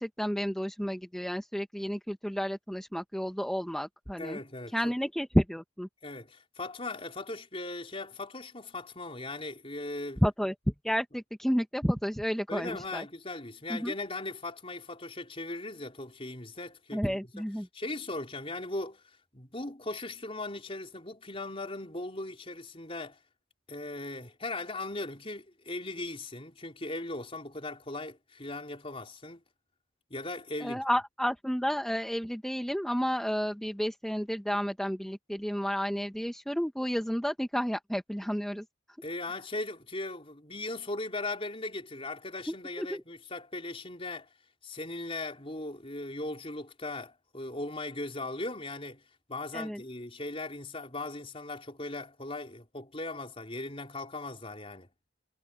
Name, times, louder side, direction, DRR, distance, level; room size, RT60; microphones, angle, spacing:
voice 1, 0.0-4.4 4.7-5.9 10.2-10.5 10.8-13.0 13.7-13.9 16.9-17.7 30.6-38.6 42.8-43.0 49.5-49.8, equal, ahead, 1.2 m, -31 dB
voice 2, 4.2-4.9 6.0-10.2 12.5-17.2 17.7-19.0 19.3-23.2 23.7-29.4 30.1-30.8 39.0-44.3 44.6-49.0 49.3-54.9, left 2 dB, 30° left, 4.4 m, -38 dB
head